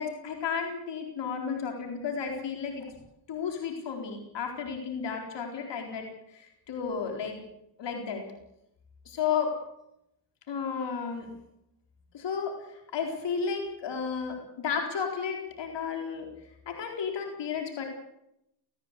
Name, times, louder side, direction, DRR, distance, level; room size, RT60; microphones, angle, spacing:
voice 1, 0.0-2.9 3.3-7.4 7.8-8.2 9.1-9.5 10.5-11.3 12.1-16.3 16.7-17.8, left 6 dB, 85° left, 3 dB, 4.2 m, -33 dB
18.5 x 17.5 x 8.3 m, 0.80 s
cardioid pair, 60°, 42 cm